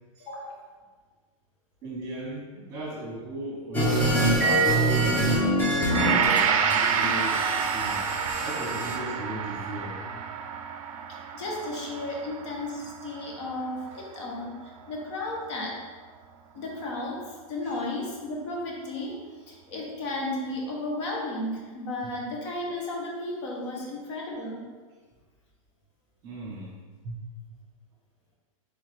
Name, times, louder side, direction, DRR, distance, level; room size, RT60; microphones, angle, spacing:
voice 1, 0.2-0.6 11.3-14.6 14.9-15.8 16.5-19.2 19.5-24.7, left 2 dB, 55° left, -2 dB, 1.1 m, -34 dB
voice 2, 1.8-4.2 4.8-8.0 8.4-10.2 13.9-14.2 17.6-17.7 23.7-23.8 26.2-26.7 27.0-27.2, right 1 dB, 20° right, -4 dB, 1.2 m, -37 dB
sound 1, 3.7-6.4 6.7-9.0, right 1 dB, 10° left, 0.6 m, -25 dB
Gong, 5.9-14.2 14.7-14.8, right 7 dB, 75° right, 0.4 m, -29 dB
3.5 x 3.4 x 3.3 m, 1.4 s
supercardioid pair, 160°, 18 cm